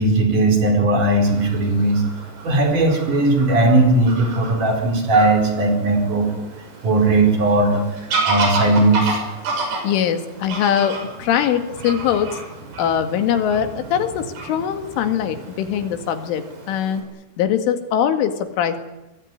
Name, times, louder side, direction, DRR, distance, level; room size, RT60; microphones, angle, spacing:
voice 1, 0.0-2.0 2.4-6.5 6.8-9.2, right 2 dB, 45° right, 4 dB, 5.7 m, -18 dB
Fowl / Bird vocalization bird call bird song, 1.3-17.0, right 3 dB, 60° right, 8.6 m, -31 dB
voice 2, 9.5-12.4 12.8-17.0 17.4-18.8, left 9 dB, 90° left, 7 dB, 4.5 m, -22 dB
23.5 x 22.5 x 9.7 m, 0.97 s
omnidirectional pair, 5.5 m